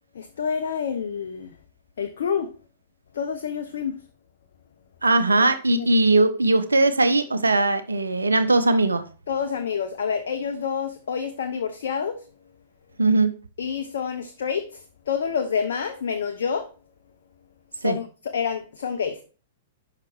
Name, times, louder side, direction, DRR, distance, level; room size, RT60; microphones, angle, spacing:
voice 1, 0.1-1.6 2.0-2.5 3.1-4.0 5.7-5.9 9.3-12.3 13.6-16.7 17.7-19.2, left 6 dB, 65° left, 0.6 m, -28 dB
voice 2, 5.0-9.0 13.0-13.3 17.8-18.0, right 2 dB, 85° right, 0.7 m, -20 dB
5.9 x 4.8 x 4.6 m
figure-of-eight pair, 110°, 0 cm